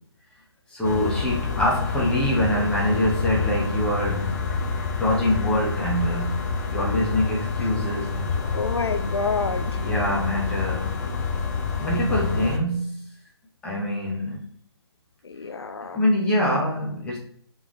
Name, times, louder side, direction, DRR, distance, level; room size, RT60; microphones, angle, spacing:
voice 1, 0.7-4.5 5.0-6.4 6.7-8.6 9.8-11.0 11.8-13.1 13.6-14.4 15.9-17.2, equal, 5° left, 0.9 m, -25 dB
sound 1, 0.8-12.6, left 5 dB, 40° left, 0.7 m, -27 dB
voice 2, 8.5-9.8 15.2-16.0, left 4 dB, 70° left, 0.4 m, -28 dB
3.7 x 3.5 x 3.1 m
figure-of-eight pair, 140°, 14 cm